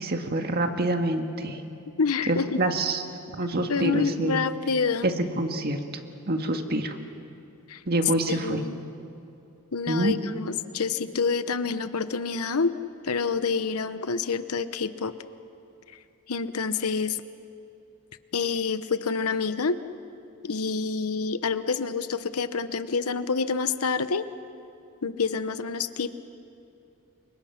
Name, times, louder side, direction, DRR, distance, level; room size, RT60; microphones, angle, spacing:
voice 1, 0.0-1.6 2.3-3.0 3.4-4.4 5.0-6.0 6.3-7.0 7.9-8.6 9.9-10.1, right 2 dB, 45° right, 5 dB, 1.8 m, -26 dB
voice 2, 2.0-2.6 3.7-5.1 7.7-7.8 8.3-8.8 9.7-12.7 13.0-15.1 16.3-17.2 18.3-19.8 20.4-24.2 25.0-26.2, left 5 dB, 85° left, 12 dB, 0.9 m, -27 dB
29.5 x 24.5 x 5.9 m, 2.8 s
head